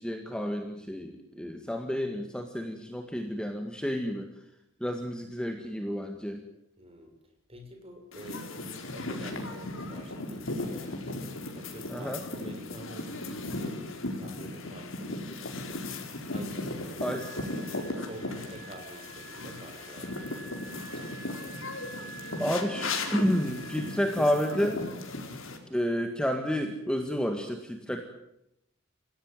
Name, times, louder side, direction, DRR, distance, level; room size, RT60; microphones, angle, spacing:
voice 1, 0.0-4.3 4.8-6.4 11.9-12.2 17.0-17.3 22.4-24.8 25.7-28.0, equal, 5° left, 4 dB, 1.9 m, -30 dB
voice 2, 6.8-7.1 7.5-8.5 8.9-11.0 11.5-13.8 14.1-15.8 16.3-17.4 17.9-20.6, equal, 30° right, 4 dB, 6.6 m, -47 dB
sound 1, 8.1-25.6, left 2 dB, 70° left, 4.6 m, -37 dB
Wind instrument woodwind instrument, 17.0-25.3, right 5 dB, 45° right, 5.3 m, -48 dB
28.5 x 17.0 x 9.2 m, 0.80 s
head